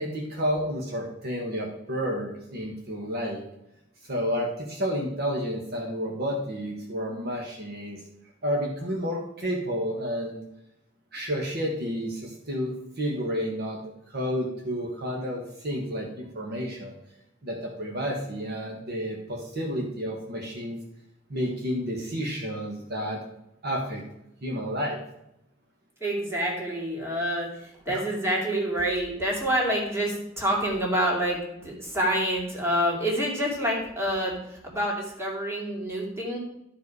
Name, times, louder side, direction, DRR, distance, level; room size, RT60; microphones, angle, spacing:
voice 1, 0.0-3.4 4.0-8.0 8.4-10.4 11.1-13.8 14.1-16.9 17.4-20.8 21.3-23.2 23.6-24.0 24.4-25.0 27.9-28.0, equal, 55° right, 0 dB, 1.5 m, -30 dB
voice 2, 26.0-36.4, equal, 15° right, -3 dB, 2.6 m, -27 dB
12.5 x 4.9 x 4.8 m, 0.82 s
head